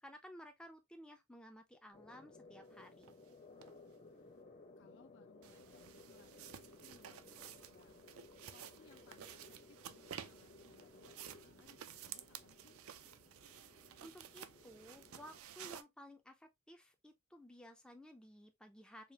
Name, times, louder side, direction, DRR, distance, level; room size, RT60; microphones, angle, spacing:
voice 1, 0.0-3.1 14.0-19.1, equal, 5° left, 0.5 m, -56 dB
sound 1, 1.9-15.4, left 3 dB, 35° left, 0.9 m, -60 dB
sound 2, 3.0-3.1 3.6-3.7 5.4-15.8, right 9 dB, 65° right, 0.4 m, -53 dB
voice 2, 4.8-8.0 8.5-12.8, left 5 dB, 55° left, 0.5 m, -67 dB
4.9 x 2.5 x 2.8 m
head